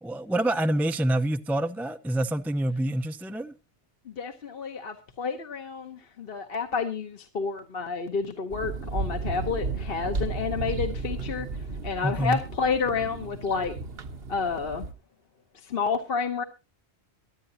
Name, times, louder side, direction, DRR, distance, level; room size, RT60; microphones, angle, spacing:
voice 1, 0.0-3.5 12.0-12.4, right 1 dB, ahead, 0.4 m, -27 dB
voice 2, 4.1-11.5 11.8-13.7 14.3-14.9 15.6-16.4, left 5 dB, 60° left, 1.2 m, -30 dB
sound 1, 8.5-14.9, right 3 dB, 65° right, 1.3 m, -34 dB
23.5 x 9.0 x 2.7 m
omnidirectional pair, 1.1 m